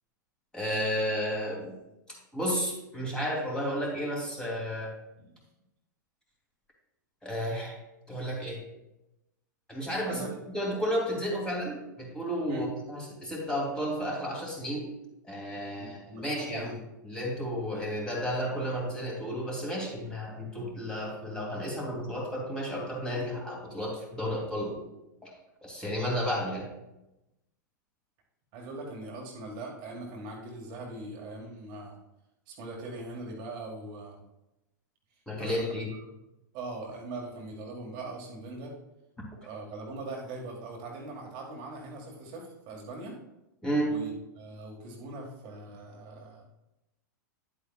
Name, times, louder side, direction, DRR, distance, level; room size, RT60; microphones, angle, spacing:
voice 1, 0.5-1.7 2.3-4.9 7.2-7.7 8.1-8.6 9.7-10.3 10.5-14.9 15.2-16.7 17.0-24.8 25.2-25.3 25.6-26.7 35.3-35.9 43.6-44.0, equal, 5° left, -3 dB, 2.9 m, -32 dB
voice 2, 15.8-16.8 28.5-32.0 32.5-34.2 35.4-35.9 36.5-38.7 39.4-43.2 43.8-46.4, right 2 dB, 45° right, 0 dB, 1.7 m, -41 dB
10.0 x 8.3 x 2.4 m, 0.94 s
hypercardioid pair, 110°, 10 cm